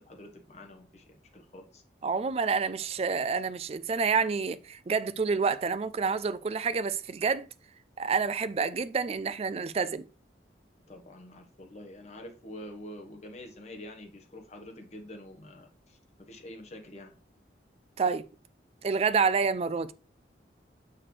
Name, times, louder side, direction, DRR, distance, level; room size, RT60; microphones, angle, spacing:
voice 1, 0.0-1.8 10.9-17.1, left 1 dB, 40° left, 1.3 m, -46 dB
voice 2, 2.0-7.5 8.0-10.1 18.0-18.3 18.8-19.9, right 5 dB, 35° right, 0.3 m, -28 dB
6.4 x 5.9 x 3.2 m
head